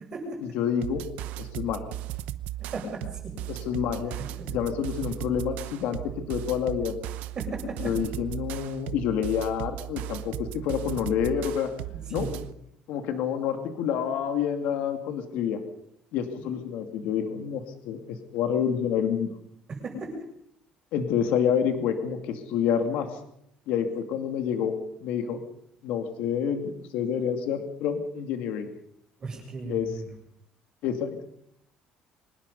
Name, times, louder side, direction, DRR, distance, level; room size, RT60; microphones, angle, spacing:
voice 1, 0.4-1.0 1.4-1.8 3.5-4.2 4.5-7.0 7.8-11.7 12.1-12.3 12.9-15.6 16.1-19.3 20.9-23.1 23.7-24.7 25.0-25.4 25.8-28.7 29.7-29.9 30.8-31.2, left 8 dB, 70° left, 6 dB, 2.4 m, -28 dB
sound 1, 0.8-12.5, right 14 dB, 75° right, 0.9 m, -36 dB
voice 2, 2.6-3.0 4.4-4.5 7.4-7.8 11.9-12.3 16.4-16.5 19.8-20.1 29.2-30.0, right 3 dB, 30° right, 0 dB, 7.5 m, -36 dB
24.5 x 20.0 x 5.5 m, 0.73 s
cardioid pair, 170°, 2 cm